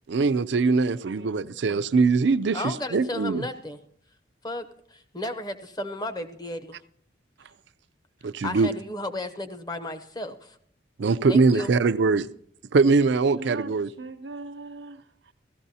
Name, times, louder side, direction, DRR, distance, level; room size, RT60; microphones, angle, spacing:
voice 1, 0.1-3.4 8.2-8.7 11.0-12.3 12.7-13.9, right 4 dB, 70° right, 0.4 m, -22 dB
voice 2, 0.7-1.9 13.3-15.3, right 3 dB, 85° right, 0.8 m, -41 dB
voice 3, 2.5-3.8 4.4-6.8 8.2-10.6 11.3-11.7, left 1 dB, 20° left, 0.8 m, -34 dB
16.0 x 14.0 x 2.8 m
head